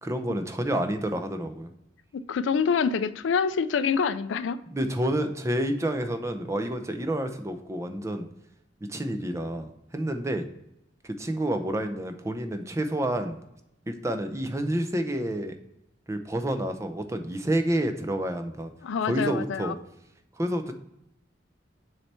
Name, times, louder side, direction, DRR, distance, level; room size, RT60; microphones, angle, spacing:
voice 1, 0.0-1.7 4.7-8.3 8.9-10.4 11.0-13.4 13.9-15.5 16.1-18.7 19.1-19.8 20.4-20.7, right 1 dB, 15° right, 7 dB, 0.5 m, -29 dB
voice 2, 2.1-4.6 18.8-19.7, left 6 dB, 75° left, 13 dB, 0.4 m, -26 dB
6.9 x 3.3 x 4.3 m, 0.83 s
head